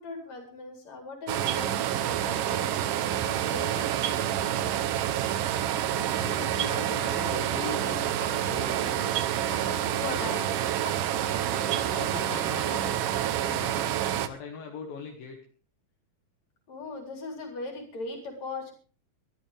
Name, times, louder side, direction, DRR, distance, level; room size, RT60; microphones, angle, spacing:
voice 1, 0.0-4.7 10.0-10.4 16.7-18.7, left 3 dB, 45° left, 3 dB, 5.1 m, -39 dB
sound 1, 1.3-14.3, right 11 dB, 70° right, 2.3 m, -28 dB
voice 2, 5.8-9.1 11.6-13.9 14.2-15.4, left 6 dB, 70° left, 2 dB, 3.5 m, -41 dB
sound 2, 7.2-12.5, right 1 dB, 15° right, 3.6 m, -42 dB
23.0 x 14.0 x 3.4 m, 0.38 s
omnidirectional pair, 4.3 m